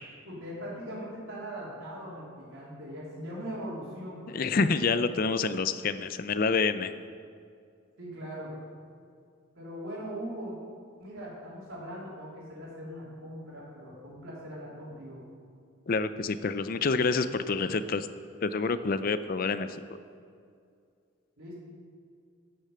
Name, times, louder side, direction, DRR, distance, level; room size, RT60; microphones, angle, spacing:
voice 1, 0.3-4.7 8.0-8.5 9.6-10.6 11.0-15.2 21.4-21.5, equal, 80° right, -6 dB, 3.6 m, -40 dB
voice 2, 4.3-6.9 15.9-18.1 18.4-19.8, left 4 dB, 45° left, 12 dB, 0.4 m, -27 dB
12.5 x 6.7 x 7.5 m, 2.3 s
head